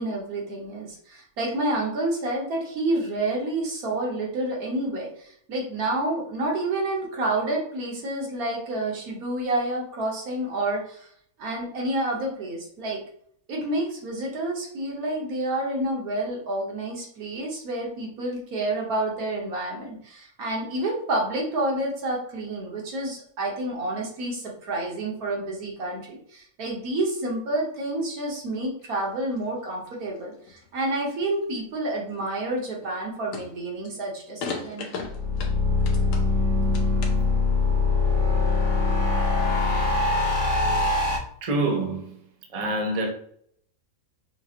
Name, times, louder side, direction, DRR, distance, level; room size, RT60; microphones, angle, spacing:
voice 1, 0.0-11.1 11.4-13.0 13.5-34.9, right 2 dB, 85° right, 1.6 m, -29 dB
sound 1, 28.8-29.4 29.9-31.4 31.7-32.3 32.8-33.1 33.3-33.9 34.4-36.3 36.6-37.4, left 4 dB, 65° left, 1.1 m, -37 dB
sound 2, 35.0-41.2, left 3 dB, 25° left, 1.0 m, -23 dB
voice 2, 41.4-42.1 42.5-43.1, right 2 dB, 35° right, 0.6 m, -26 dB
5.4 x 2.5 x 2.8 m
omnidirectional pair, 1.5 m